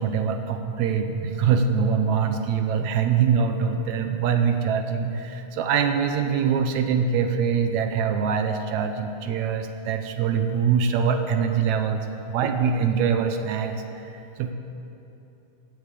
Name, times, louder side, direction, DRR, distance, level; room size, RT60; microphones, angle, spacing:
voice 1, 0.0-13.8 14.0-14.5, right 6 dB, 75° right, 6 dB, 2.0 m, -24 dB
14.0 x 8.3 x 8.4 m, 2.8 s
omnidirectional pair, 3.5 m